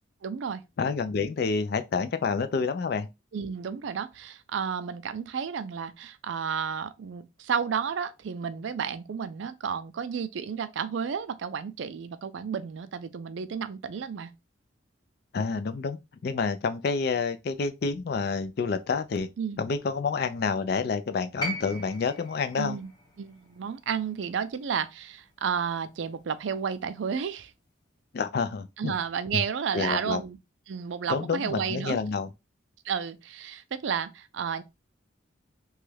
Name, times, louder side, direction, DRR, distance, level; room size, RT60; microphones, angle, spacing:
voice 1, 0.2-0.6 3.3-14.3 19.4-19.6 22.6-22.9 23.2-27.5 28.8-30.4 30.7-32.0 32.8-34.6, right 7 dB, 75° right, 0.4 m, -32 dB
voice 2, 0.8-3.1 15.3-19.3 19.6-22.8 28.1-28.9 29.7-30.2 31.1-32.3, left 5 dB, 55° left, 0.4 m, -28 dB
sound 1, 21.4-25.6 26.8-26.9, equal, 20° left, 0.9 m, -39 dB
3.0 x 2.3 x 3.1 m
head